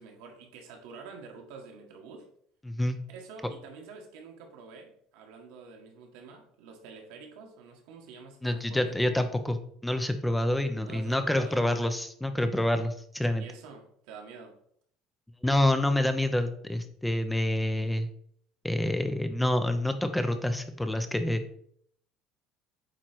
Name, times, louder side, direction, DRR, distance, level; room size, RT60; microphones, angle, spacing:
voice 1, 0.0-2.3 3.1-9.2 10.2-10.5 10.8-11.6 13.3-14.6, right 4 dB, 80° right, 2 dB, 1.6 m, -47 dB
voice 2, 2.6-3.0 8.4-9.6 9.8-13.4 15.4-18.1 18.6-21.4, left 1 dB, 5° left, 8 dB, 0.5 m, -27 dB
8.6 x 3.2 x 4.5 m, 0.65 s
cardioid pair, 135°, 0 cm